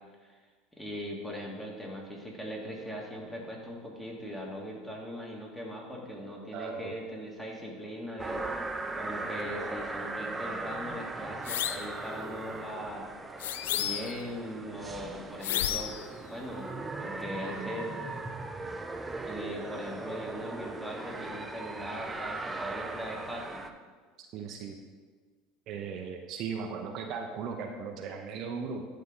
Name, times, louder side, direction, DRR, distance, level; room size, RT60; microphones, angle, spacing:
voice 1, 0.8-17.9 19.2-23.6, equal, 5° left, -2 dB, 1.8 m, -40 dB
voice 2, 6.5-6.9 24.2-24.8 25.7-28.9, right 5 dB, 55° right, 3 dB, 0.6 m, -37 dB
sound 1, 8.2-23.7, right 2 dB, 15° right, 0.5 m, -38 dB
sound 2, 11.5-11.9 13.4-14.2 15.4-16.0, left 11 dB, 80° left, 0.3 m, -32 dB
11.0 x 3.8 x 3.7 m, 1.5 s
hypercardioid pair, 85°, 0 cm